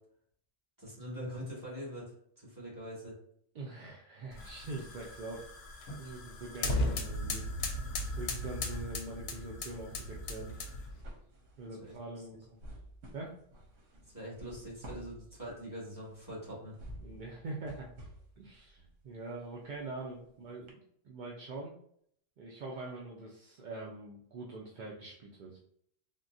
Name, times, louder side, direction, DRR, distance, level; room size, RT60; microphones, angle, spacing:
voice 1, 0.8-3.1 11.8-11.9 14.1-16.8, equal, 15° right, -7 dB, 1.4 m, -43 dB
voice 2, 3.5-5.5 6.0-7.5 8.2-10.5 11.6-12.6 13.1-13.4 14.9-15.0 17.0-17.9 18.4-20.8 21.0-21.7 22.4-25.6, right 2 dB, 60° right, -3 dB, 0.5 m, -43 dB
sound 1, 4.3-11.0, left 2 dB, 65° left, 0.8 m, -37 dB
sound 2, 5.3-6.2 6.5-20.3 20.7-20.8, right 1 dB, 80° right, 1.1 m, -53 dB
3.6 x 2.2 x 2.5 m, 0.67 s
omnidirectional pair, 1.3 m